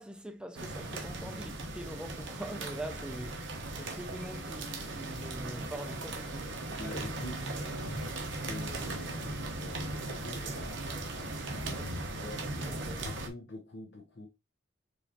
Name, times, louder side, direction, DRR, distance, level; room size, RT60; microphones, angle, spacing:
voice 1, 0.0-6.5 12.6-13.0, right 1 dB, 5° right, 0.4 m, -43 dB
sound 1, 0.5-13.3, right 2 dB, 70° right, 0.9 m, -38 dB
voice 2, 6.7-10.8 11.5-14.3, left 1 dB, 60° left, 0.7 m, -46 dB
4.7 x 3.2 x 2.7 m
head